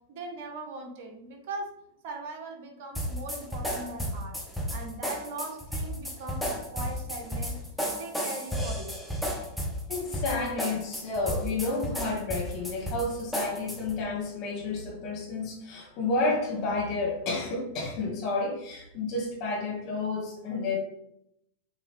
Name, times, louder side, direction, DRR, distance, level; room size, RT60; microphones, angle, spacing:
voice 1, 0.1-1.7 2.0-4.4 4.7-7.6 8.0-9.1, right 3 dB, 55° right, 4 dB, 1.4 m, -40 dB
sound 1, 2.9-14.0, equal, ahead, 1.4 m, -33 dB
voice 2, 9.9-20.8, left 3 dB, 45° left, -2 dB, 2.1 m, -31 dB
7.7 x 3.8 x 3.5 m, 0.78 s
hypercardioid pair, 95°, 0 cm